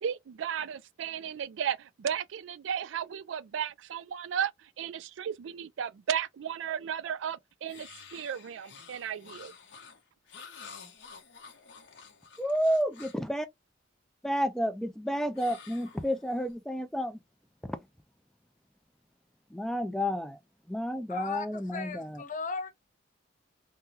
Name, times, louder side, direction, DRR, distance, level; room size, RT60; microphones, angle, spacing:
voice 1, 0.0-9.5, right 8 dB, 80° right, 0.3 m, -34 dB
sound 1, 7.7-13.3 15.3-16.5, left 5 dB, 65° left, 1.0 m, -50 dB
voice 2, 12.4-13.5 14.2-17.2 17.6-17.8 19.5-20.4 20.7-22.2, equal, ahead, 0.3 m, -30 dB
voice 3, 21.1-22.7, left 4 dB, 40° left, 0.6 m, -37 dB
3.5 x 2.1 x 2.7 m
head